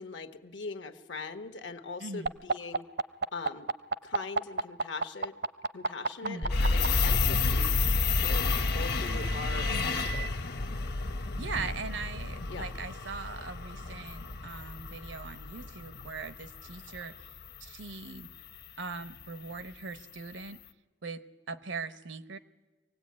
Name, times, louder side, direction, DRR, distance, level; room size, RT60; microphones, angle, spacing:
voice 1, 0.0-2.8 3.3-3.7 4.0-5.4 5.7-10.3 12.5-12.7, left 4 dB, 80° left, 8 dB, 1.2 m, -41 dB
voice 2, 2.0-2.3 6.2-6.5 9.7-9.9 11.3-17.3 17.6-18.3 18.8-20.6 21.0-22.4, right 4 dB, 85° right, 12 dB, 0.9 m, -40 dB
sound 1, 2.3-6.9 8.0-10.3, right 4 dB, 65° right, 0.6 m, -32 dB
sound 2, 6.4-16.4 16.7-17.4, left 1 dB, 45° left, 0.6 m, -32 dB
sound 3, 6.5-20.5, left 8 dB, 60° left, 1.0 m, -36 dB
24.5 x 18.0 x 8.6 m, 1.3 s
head